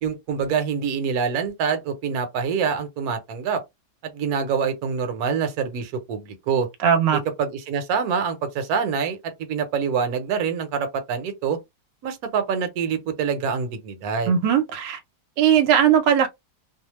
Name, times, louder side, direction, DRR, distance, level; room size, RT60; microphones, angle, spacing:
voice 1, 0.0-3.6 4.1-6.7 7.4-11.6 12.0-14.3, right 6 dB, 65° right, 1.2 m, -25 dB
voice 2, 6.8-7.2 14.3-15.0 15.4-16.3, right 8 dB, 85° right, 1.2 m, -18 dB
2.8 x 2.1 x 3.0 m
omnidirectional pair, 1.9 m